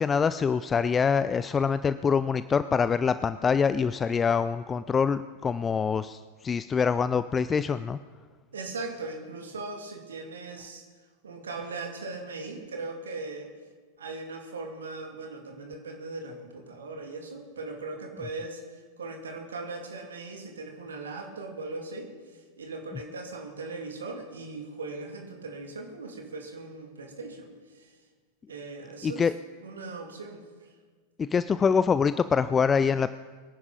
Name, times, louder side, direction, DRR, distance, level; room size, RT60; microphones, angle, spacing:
voice 1, 0.0-8.0 29.0-29.3 31.2-33.1, left 6 dB, 20° left, 14 dB, 0.4 m, -25 dB
voice 2, 8.5-10.8 11.2-13.5 14.0-28.0 28.5-29.2 29.6-30.7, right 3 dB, 70° right, 2 dB, 2.5 m, -39 dB
23.5 x 10.5 x 4.1 m, 1.5 s
figure-of-eight pair, 90°, 0 cm